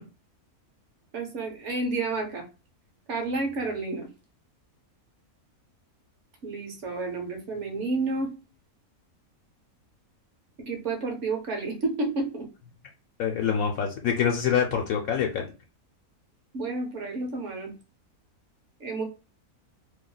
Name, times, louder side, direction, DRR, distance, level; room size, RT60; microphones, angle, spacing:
voice 1, 1.1-2.4 3.1-4.1 6.4-8.3 10.6-12.5 16.5-17.7 18.8-19.0, right 3 dB, 55° right, 2 dB, 1.1 m, -30 dB
voice 2, 13.2-15.4, left 7 dB, 70° left, 1 dB, 1.0 m, -25 dB
2.9 x 2.2 x 3.8 m, 0.32 s
omnidirectional pair, 1.6 m